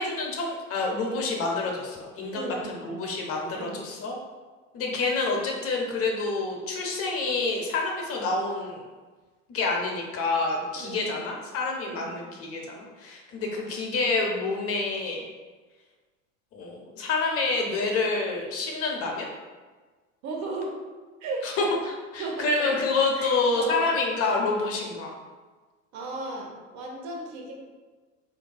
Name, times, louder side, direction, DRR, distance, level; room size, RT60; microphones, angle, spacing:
voice 1, 0.0-4.2 4.7-8.8 9.5-15.2 16.5-19.3 21.4-25.1, left 3 dB, 40° left, 0 dB, 0.7 m, -28 dB
voice 2, 2.3-3.1 3.5-3.8 10.7-11.1 11.8-12.2 13.4-13.6 20.2-20.7 21.2-21.5 22.2-22.7 23.2-23.9 25.9-27.5, right 2 dB, 45° right, -1 dB, 0.9 m, -35 dB
4.5 x 2.5 x 2.3 m, 1.4 s
hypercardioid pair, 80°, 38 cm